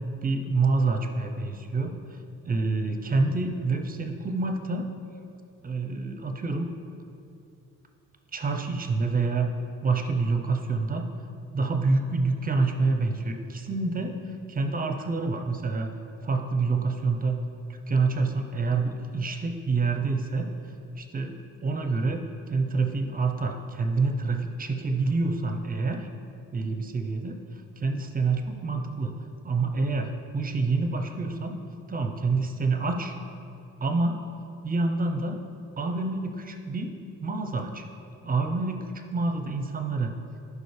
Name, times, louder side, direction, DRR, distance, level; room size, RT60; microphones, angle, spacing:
voice 1, 0.2-2.2 2.5-4.8 5.6-6.7 8.3-9.5 9.8-11.1 11.5-14.1 14.5-15.9 16.2-17.4 17.9-20.5 21.0-21.4 21.6-22.2 22.5-26.1 26.5-29.1 29.4-31.6 31.9-33.2 33.8-34.2 34.6-35.4 35.8-36.9 37.2-37.8 38.2-38.8 39.1-40.2, right 3 dB, 30° right, 5 dB, 0.7 m, -27 dB
11.5 x 5.0 x 3.4 m, 2.5 s
cardioid pair, 90°, 30 cm